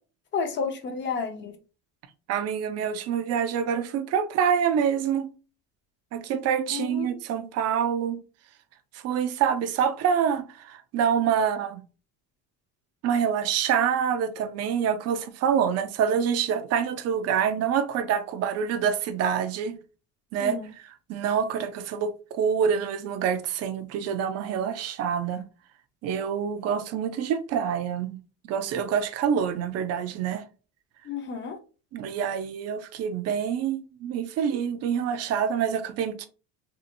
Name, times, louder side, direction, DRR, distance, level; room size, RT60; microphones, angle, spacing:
voice 1, 0.3-1.5 6.7-7.1 20.4-20.7 31.1-31.6, left 5 dB, 30° left, 0.6 m, -31 dB
voice 2, 2.3-5.3 6.1-8.2 8.9-11.8 13.0-19.8 20.3-25.4 26.0-28.2 28.5-30.4 31.9-36.3, right 8 dB, 45° right, 0.5 m, -26 dB
2.9 x 2.7 x 2.6 m
cardioid pair, 140°, 35 cm